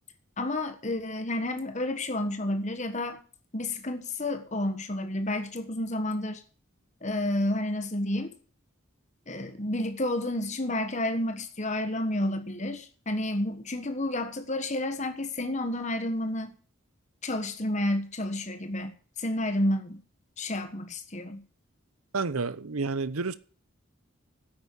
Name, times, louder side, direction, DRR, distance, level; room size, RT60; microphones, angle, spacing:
voice 1, 0.4-3.2 3.5-6.4 7.0-8.3 9.3-16.5 17.2-18.9 19.2-20.0 20.4-21.4, left 1 dB, 35° left, 1.4 m, -30 dB
voice 2, 22.1-23.4, right 4 dB, 85° right, 0.9 m, -30 dB
9.9 x 8.7 x 8.6 m
head